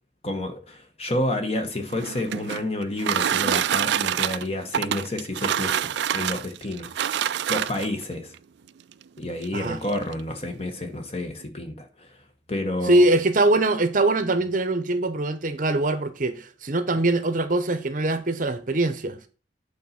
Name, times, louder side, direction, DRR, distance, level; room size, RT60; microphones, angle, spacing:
voice 1, 0.2-6.9 7.5-8.3 9.2-12.1 12.5-13.1, left 1 dB, 30° left, 1.1 m, -30 dB
sound 1, 1.8-8.0 8.9-9.0 9.4-9.5 9.8-10.2, right 9 dB, 65° right, 0.3 m, -26 dB
voice 2, 12.8-19.2, right 2 dB, 45° right, 0.7 m, -22 dB
8.6 x 4.0 x 5.7 m
head